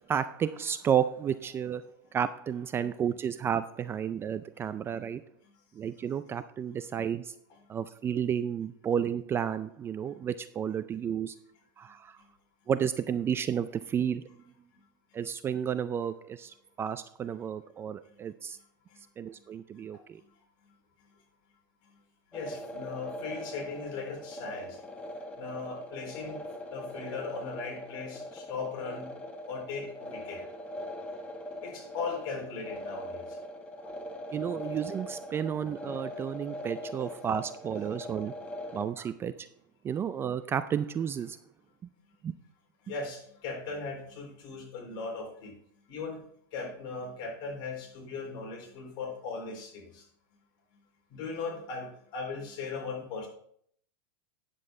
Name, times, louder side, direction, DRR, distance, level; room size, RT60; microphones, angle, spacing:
voice 1, 0.1-1.8 2.1-5.2 5.8-7.3 7.7-11.4 11.8-12.2 12.7-14.3 15.1-18.6 19.2-20.2 34.3-38.3 38.7-39.5 39.8-41.4 42.2-42.3, right 8 dB, 20° right, 12 dB, 0.4 m, -32 dB
voice 2, 22.3-24.8 25.4-29.1 29.5-30.5 31.6-33.4 42.8-45.6 45.9-46.2 46.5-50.0 51.1-53.3, left 4 dB, 50° left, 0 dB, 3.9 m, -38 dB
sound 1, 22.3-38.8, left 1 dB, 10° left, 1.3 m, -41 dB
9.7 x 7.6 x 3.7 m, 0.63 s
supercardioid pair, 125°, 11 cm